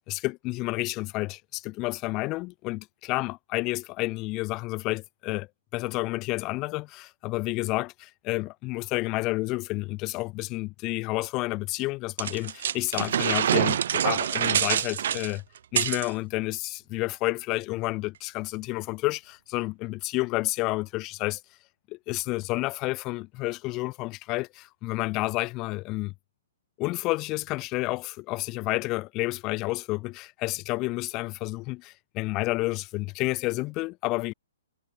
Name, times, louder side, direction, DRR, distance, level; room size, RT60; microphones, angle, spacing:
voice 1, 0.1-5.5 5.7-15.4 15.7-21.4 21.9-26.1 26.8-34.3, left 22 dB, 30° left, 2.0 m, -30 dB
sound 1, 12.2-16.1, right 9 dB, 65° right, 1.6 m, -25 dB
hypercardioid pair, 145°, 0 cm